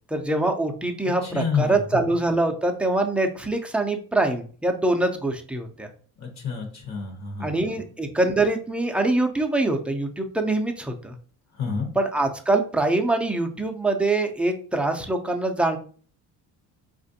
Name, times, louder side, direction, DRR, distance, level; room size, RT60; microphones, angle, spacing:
voice 1, 0.1-5.9 7.4-11.1 11.9-15.8, right 2 dB, 5° right, 4 dB, 0.4 m, -24 dB
voice 2, 1.2-2.0 6.2-7.8 11.6-11.9, left 6 dB, 45° left, 3 dB, 1.0 m, -29 dB
4.3 x 2.5 x 2.6 m, 0.42 s
cardioid pair, 100°, 39 cm